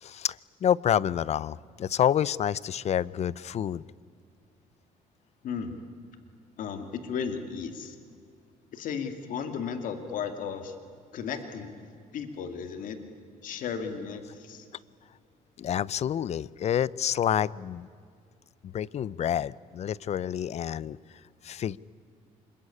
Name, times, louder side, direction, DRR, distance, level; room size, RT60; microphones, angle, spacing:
voice 1, 0.0-3.8 15.6-17.9 18.6-21.8, left 9 dB, 50° left, 22 dB, 0.6 m, -28 dB
voice 2, 6.6-7.9 8.7-10.7 11.1-11.9 12.1-13.0 13.4-14.7, left 6 dB, 70° left, 8 dB, 2.4 m, -35 dB
26.0 x 22.0 x 9.9 m, 2.3 s
cardioid pair, 95°, 14 cm